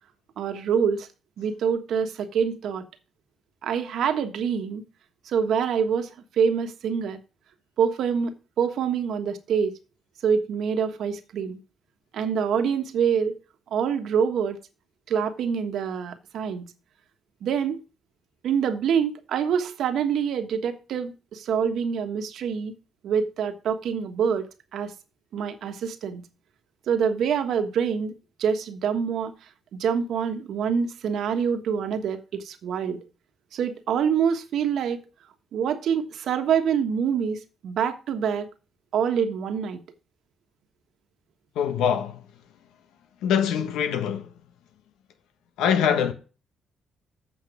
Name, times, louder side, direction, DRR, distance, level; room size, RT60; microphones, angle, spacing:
voice 1, 0.4-1.1 1.4-2.8 3.6-4.8 5.2-7.2 7.8-9.7 10.2-11.6 12.1-13.4 13.7-14.6 15.1-16.7 17.4-17.8 18.4-22.7 23.0-24.5 24.7-24.9 25.3-26.2 26.9-28.1 28.4-29.3 29.7-33.0 33.5-35.0 35.5-38.5 38.9-39.8, right 7 dB, 70° right, 1.3 m, -26 dB
voice 2, 41.5-42.3 43.2-44.4 45.6-46.1, left 8 dB, 90° left, 1.2 m, -24 dB
8.1 x 6.0 x 6.0 m
cardioid pair, 90°, 0 cm